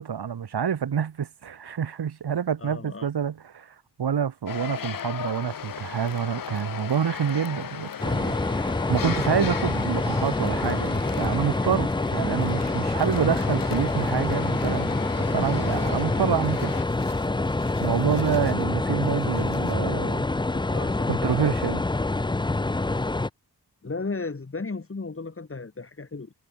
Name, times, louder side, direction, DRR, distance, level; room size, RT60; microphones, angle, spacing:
voice 1, 0.0-8.3 8.9-16.7 17.8-20.3 21.1-21.8, right 8 dB, 65° right, 1.4 m, -27 dB
voice 2, 2.6-3.1 20.5-21.2 23.8-26.3, left 3 dB, 30° left, 2.8 m, -34 dB
sound 1, 4.5-16.8, left 8 dB, 50° left, 0.8 m, -37 dB
Crumpling crinkling, 4.7-16.1 16.4-19.8, left 6 dB, 75° left, 4.1 m, -55 dB
sound 2, 8.0-23.3, left 2 dB, 10° left, 0.5 m, -26 dB
wide cardioid pair, 140°, 42 cm